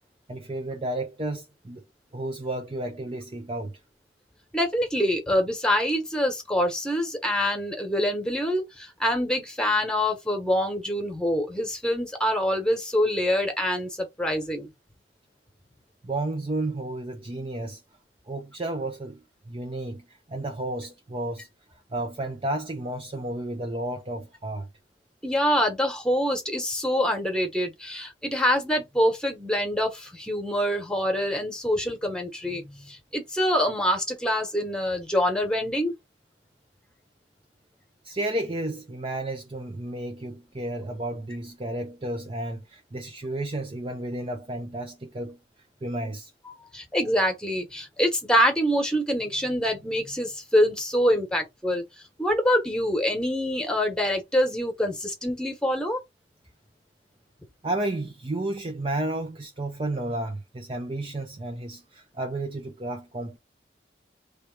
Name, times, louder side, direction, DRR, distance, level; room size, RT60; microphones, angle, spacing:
voice 1, 0.3-1.8 2.1-3.8 16.0-17.8 18.3-21.5 21.9-24.7 38.0-45.4 45.8-46.3 57.6-63.4, right 1 dB, 30° right, 0.5 m, -32 dB
voice 2, 4.5-14.7 25.2-35.9 46.7-51.8 52.2-56.0, equal, 5° left, 1.2 m, -25 dB
3.2 x 3.1 x 4.7 m
head